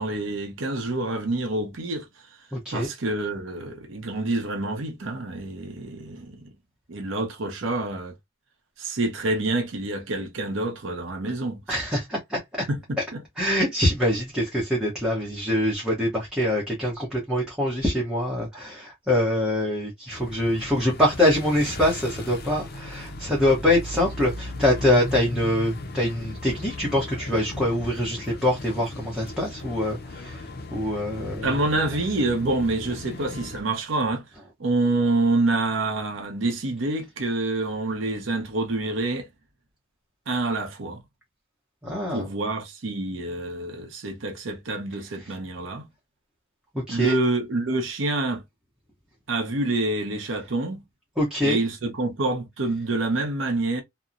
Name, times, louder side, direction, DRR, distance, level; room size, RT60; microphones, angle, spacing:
voice 1, 0.0-2.1 2.7-6.5 6.9-8.1 8.8-11.6 12.7-13.2 31.4-34.3 34.6-39.3 40.3-41.0 42.1-45.9 46.9-48.4 49.3-50.8 51.4-53.8, right 2 dB, 85° right, 0.7 m, -27 dB
voice 2, 2.5-2.9 11.7-12.7 13.4-31.5 41.8-42.3 46.9-47.2 51.2-51.6, left 1 dB, 5° right, 0.8 m, -24 dB
sound 1, 20.1-33.6, left 1 dB, 55° left, 0.5 m, -37 dB
2.9 x 2.0 x 2.4 m
head